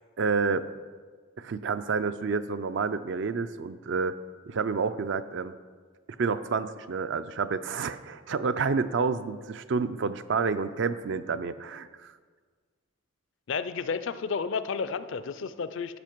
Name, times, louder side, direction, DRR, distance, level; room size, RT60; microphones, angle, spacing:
voice 1, 0.2-0.7 1.4-4.1 4.5-5.5 6.2-12.1, right 5 dB, 60° right, 12 dB, 0.4 m, -29 dB
voice 2, 13.5-16.0, left 5 dB, 65° left, 12 dB, 0.4 m, -31 dB
12.0 x 5.8 x 4.6 m, 1.5 s
head